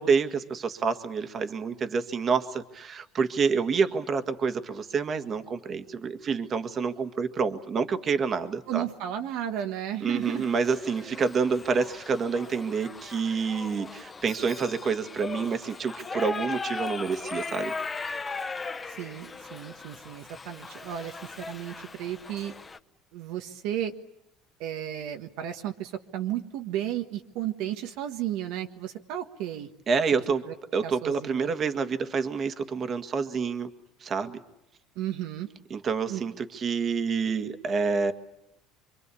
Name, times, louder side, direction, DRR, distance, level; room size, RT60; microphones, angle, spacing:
voice 1, 0.0-8.8 10.0-17.7 29.9-30.4 30.7-33.7 34.0-34.4 35.7-38.1, right 5 dB, 35° right, 8 dB, 1.7 m, -28 dB
voice 2, 8.7-10.5 18.9-22.5 23.1-23.9 24.6-29.7 30.5-30.6 30.8-31.5 34.9-35.5 36.1-36.2, right 11 dB, 75° right, 5 dB, 1.4 m, -33 dB
Shout / Livestock farm animals working animals, 10.2-22.8, left 4 dB, 20° left, 1.0 m, -38 dB
26.5 x 23.5 x 8.4 m, 0.86 s
supercardioid pair, 115°, 0 cm